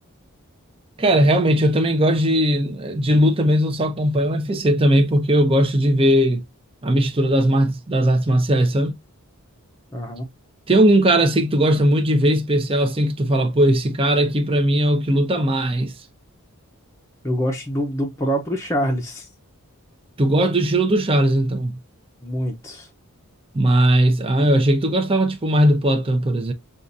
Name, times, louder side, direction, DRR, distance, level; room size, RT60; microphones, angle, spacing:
voice 1, 1.0-6.4 6.8-8.9 10.7-15.9 20.2-21.7 23.5-26.5, right 1 dB, 25° right, 0.7 m, -18 dB
voice 2, 9.9-10.3 17.2-19.3 22.2-22.9, equal, 15° left, 0.7 m, -25 dB
6.6 x 2.5 x 2.6 m
head